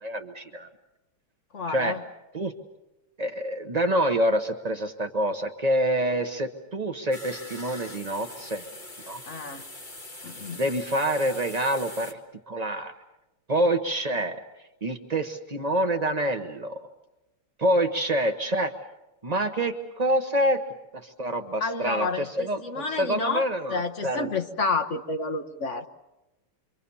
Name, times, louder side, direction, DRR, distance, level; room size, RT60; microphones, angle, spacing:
voice 1, 0.0-0.7 1.7-2.0 2.3-2.5 3.2-8.6 9.1-9.2 10.5-12.2 12.5-12.9 13.5-14.4 14.8-16.9 17.6-18.7 19.2-20.6 20.9-24.3, right 1 dB, 60° right, 6 dB, 0.4 m, -26 dB
voice 2, 1.5-2.0 9.3-9.6 10.2-10.6 21.6-23.4 23.7-25.9, left 4 dB, 45° left, 6 dB, 1.1 m, -30 dB
sound 1, 7.1-12.1, left 2 dB, 25° left, 1.7 m, -42 dB
27.5 x 24.5 x 7.1 m, 0.97 s
omnidirectional pair, 2.4 m